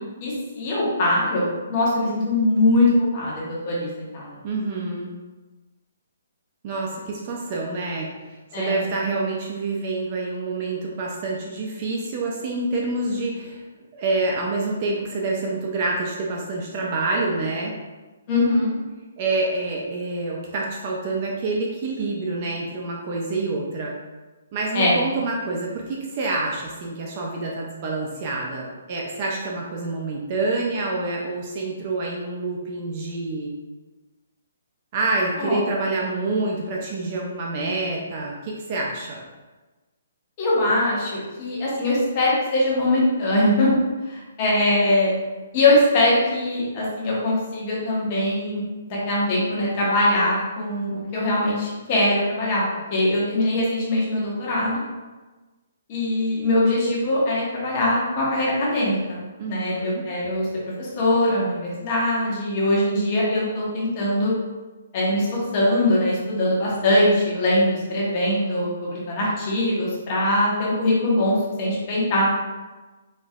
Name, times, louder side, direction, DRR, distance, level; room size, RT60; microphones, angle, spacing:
voice 1, 0.2-4.4 8.5-8.8 18.3-18.7 24.7-24.9 35.4-35.7 40.4-43.8 44.1-45.2 45.5-52.6 52.9-54.8 55.9-59.2 59.5-60.5 60.8-64.3 64.9-72.3, left 1 dB, 30° left, -6 dB, 1.0 m, -22 dB
voice 2, 4.4-5.1 6.6-13.6 13.9-17.7 19.2-23.9 24.5-33.5 34.9-39.2 59.4-60.0, right 3 dB, 30° right, -2 dB, 0.5 m, -27 dB
4.2 x 3.0 x 2.4 m, 1.2 s
hypercardioid pair, 170°, 0 cm